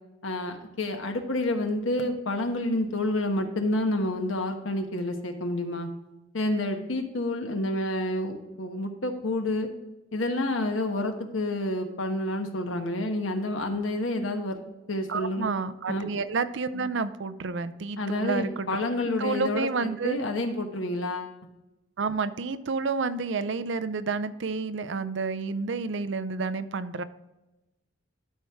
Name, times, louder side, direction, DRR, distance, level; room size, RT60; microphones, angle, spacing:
voice 1, 0.2-5.9 6.3-9.7 10.1-14.6 14.9-15.5 15.9-16.1 18.0-21.3, left 1 dB, 85° left, 5 dB, 1.2 m, -29 dB
voice 2, 15.1-20.2 22.0-27.0, right 4 dB, 65° right, 13 dB, 0.5 m, -30 dB
12.5 x 4.6 x 3.5 m, 1.0 s
head